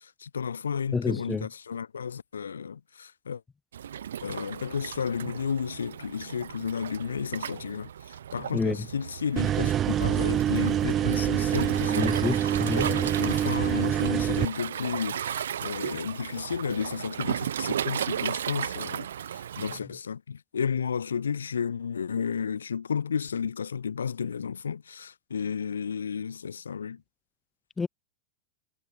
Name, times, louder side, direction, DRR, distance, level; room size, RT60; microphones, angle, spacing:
voice 1, 0.2-3.4 4.2-7.9 8.3-12.3 12.7-19.1 19.3-27.0, left 6 dB, 70° left, 0.8 m, -32 dB
voice 2, 0.9-1.5 8.5-8.8 11.9-12.9 27.8-27.9, left 4 dB, 15° left, 0.4 m, -29 dB
Waves surf, 3.7-19.8, right 9 dB, 65° right, 0.7 m, -35 dB
sound 1, 9.4-14.5, right 10 dB, 30° right, 0.9 m, -26 dB
figure-of-eight pair, 90°, 0 cm